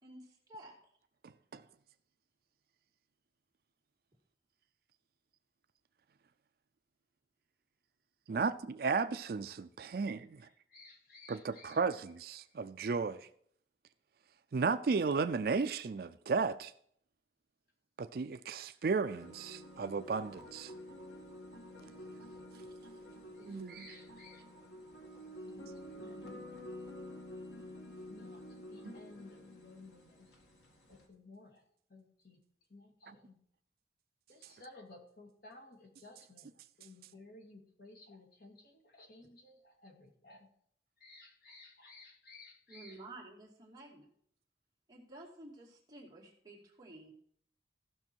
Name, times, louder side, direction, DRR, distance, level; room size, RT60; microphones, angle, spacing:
voice 1, 0.0-0.7 8.3-8.5 22.5-22.6 42.7-44.1 44.9-47.1, right 2 dB, 20° right, 2.4 m, -52 dB
voice 2, 1.2-1.6 8.3-10.5 11.3-13.3 14.5-16.7 18.0-20.7 23.4-24.0 28.8-28.9, right 4 dB, 55° right, 0.4 m, -34 dB
voice 3, 10.4-11.8 22.9-24.4 25.2-26.5 28.1-28.4 28.7-30.3 30.9-31.6 31.9-32.4 32.7-33.4 34.3-36.5 36.8-40.5 41.0-43.0, left 2 dB, 60° left, 2.0 m, -56 dB
sound 1, 19.1-31.1, left 1 dB, 80° left, 2.0 m, -50 dB
15.5 x 6.1 x 4.5 m
head